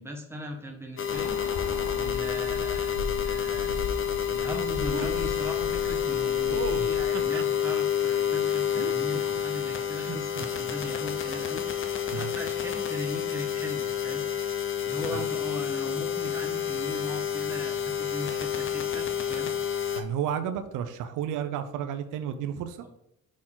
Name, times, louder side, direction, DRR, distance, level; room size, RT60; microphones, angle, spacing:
voice 1, 0.0-3.9 4.3-14.2 14.8-19.5 22.8-22.9, equal, 10° right, 2 dB, 1.4 m, -39 dB
sound 1, 1.0-20.0, left 8 dB, 45° left, 0.8 m, -29 dB
Bird, 1.1-7.2, left 4 dB, 85° left, 1.0 m, -37 dB
sound 2, 4.9-5.1 6.5-7.7 8.4-9.4 9.9-10.4, right 7 dB, 45° right, 0.6 m, -37 dB
voice 2, 20.0-22.8, right 9 dB, 85° right, 9 dB, 0.6 m, -32 dB
6.0 x 4.2 x 3.8 m, 0.82 s
cardioid pair, 90°, 30 cm